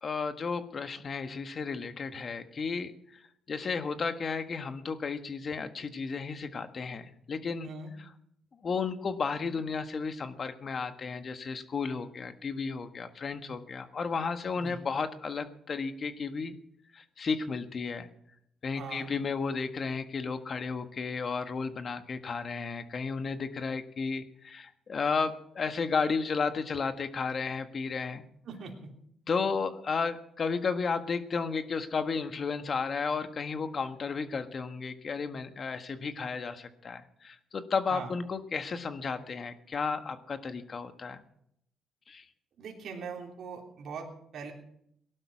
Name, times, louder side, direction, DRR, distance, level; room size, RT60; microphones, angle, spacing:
voice 1, 0.0-7.7 8.0-8.1 8.6-16.5 16.9-18.1 18.6-28.2 29.3-41.2 42.1-42.2, left 5 dB, 45° left, 8 dB, 1.5 m, -33 dB
voice 2, 18.7-19.1 28.5-28.9 37.9-38.1 42.6-44.5, right 5 dB, 65° right, 0 dB, 3.5 m, -41 dB
18.5 x 12.0 x 6.3 m, 0.72 s
cardioid pair, 90°, 0 cm